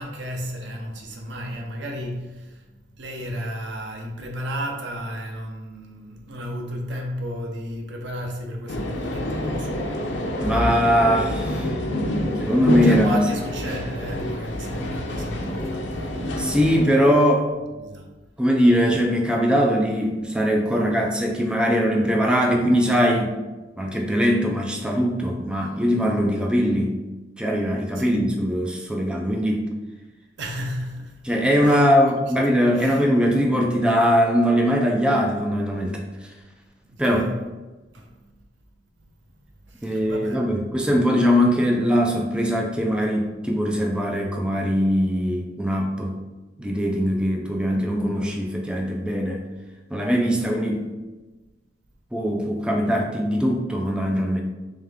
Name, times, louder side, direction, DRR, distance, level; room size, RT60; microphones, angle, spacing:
voice 1, 0.0-2.7 3.0-9.9 12.4-12.5 12.8-16.7 17.8-18.1 28.0-28.3 30.4-31.2 31.6-31.8 32.8-33.0 36.8-37.4 37.9-38.3 39.7-40.4, equal, 70° right, 0.7 m, -34 dB
sound 1, 8.7-16.8, left 1 dB, 80° left, 0.6 m, -27 dB
voice 2, 10.4-11.8 12.4-13.3 16.4-17.5 18.4-23.3 23.8-27.0 27.4-29.6 31.2-36.3 37.0-37.3 39.8-46.1 46.6-49.5 49.9-50.9 52.1-54.4, equal, 5° right, 0.4 m, -21 dB
3.6 x 3.2 x 3.5 m
head